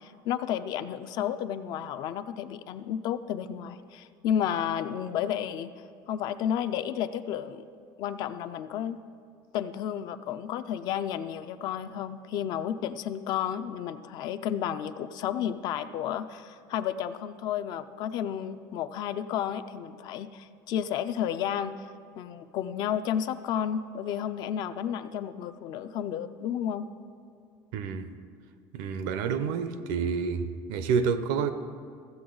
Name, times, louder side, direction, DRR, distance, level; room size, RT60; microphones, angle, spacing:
voice 1, 0.0-5.7 6.1-7.6 8.0-9.0 9.5-21.9 22.2-26.9, left 9 dB, 50° left, 0.4 m, -32 dB
voice 2, 27.7-28.1 28.7-31.5, right 6 dB, 80° right, 0.6 m, -29 dB
14.5 x 7.7 x 3.8 m
cardioid pair, 165°, 9 cm